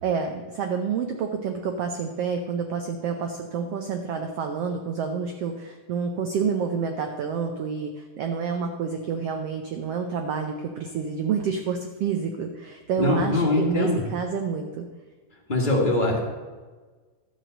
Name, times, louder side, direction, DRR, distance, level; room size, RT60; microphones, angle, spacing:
voice 1, 0.0-14.9, right 6 dB, 85° right, 5 dB, 1.3 m, -28 dB
voice 2, 13.0-14.0 15.5-16.2, left 2 dB, 40° left, -2 dB, 0.7 m, -22 dB
12.5 x 5.1 x 7.8 m, 1.4 s
omnidirectional pair, 3.8 m